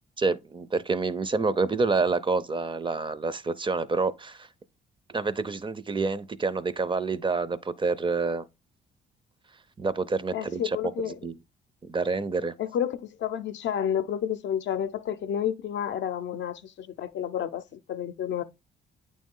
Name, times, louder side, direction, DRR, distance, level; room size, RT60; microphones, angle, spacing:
voice 1, 0.2-4.5 5.1-8.5 9.8-10.8 11.1-11.3 11.8-12.5, right 4 dB, 25° right, 0.5 m, -28 dB
voice 2, 10.3-11.2 12.6-18.4, left 9 dB, 65° left, 0.6 m, -30 dB
8.6 x 3.2 x 3.6 m
cardioid pair, 90°, 20 cm